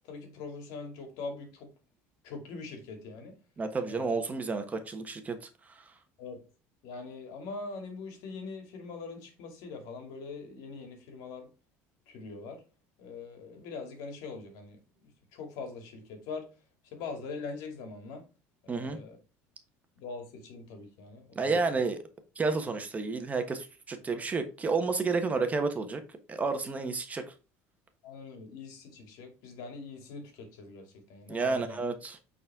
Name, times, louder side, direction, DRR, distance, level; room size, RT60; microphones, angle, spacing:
voice 1, 0.1-1.7 2.2-3.3 3.8-4.1 6.2-6.4 6.8-11.5 12.1-12.6 13.0-16.5 16.8-18.2 18.6-19.2 20.0-21.8 28.0-31.8, left 4 dB, 70° left, 2.5 m, -42 dB
voice 2, 3.6-5.9 18.7-19.0 21.3-22.0 22.4-26.0 26.3-27.3 31.3-32.2, right 4 dB, 25° right, 1.2 m, -31 dB
8.7 x 4.2 x 3.6 m
cardioid pair, 120°, 7 cm